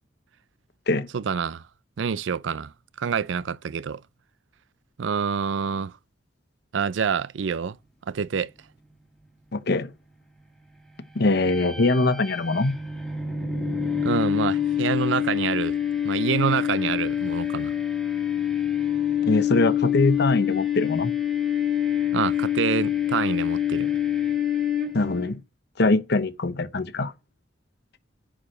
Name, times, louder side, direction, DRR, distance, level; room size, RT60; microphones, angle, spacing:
voice 1, 1.1-1.6 2.0-2.7 3.0-4.0 5.0-5.9 6.7-7.8 8.1-8.5 14.0-15.8 16.0-17.7 22.1-23.9, right 6 dB, 75° right, 0.4 m, -27 dB
voice 2, 9.5-9.9 11.1-12.7 19.2-21.1 24.9-25.4 25.8-27.1, left 2 dB, 60° left, 0.9 m, -22 dB
sound 1, 11.3-25.3, left 9 dB, ahead, 1.7 m, -26 dB
10.0 x 4.9 x 6.4 m
head